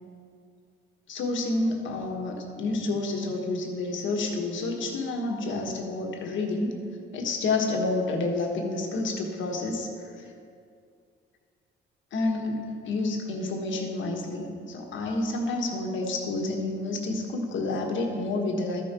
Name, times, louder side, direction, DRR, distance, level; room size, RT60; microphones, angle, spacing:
voice 1, 1.1-6.7 7.1-9.9 10.2-10.3 12.1-18.8, left 2 dB, 75° left, 2 dB, 1.4 m, -29 dB
13.0 x 5.3 x 4.3 m, 2.3 s
cardioid pair, 90°, 20 cm